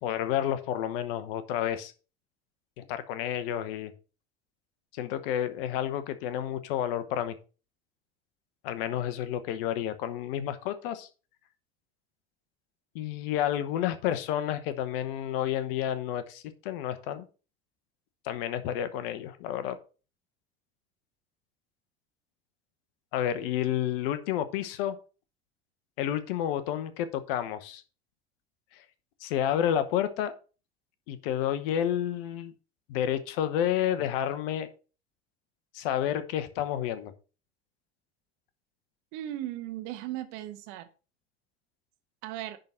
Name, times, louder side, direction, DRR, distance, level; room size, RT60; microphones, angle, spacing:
voice 1, 0.0-1.9 2.8-3.9 4.9-7.3 8.6-11.1 12.9-17.3 18.2-19.8 23.1-25.0 26.0-27.8 29.2-30.3 31.1-32.5 32.9-34.7 35.7-37.1, left 10 dB, 65° left, 1.0 m, -30 dB
voice 2, 39.1-40.9 42.2-42.6, right 13 dB, 60° right, 1.2 m, -37 dB
10.5 x 3.9 x 5.7 m
figure-of-eight pair, 65°, 32 cm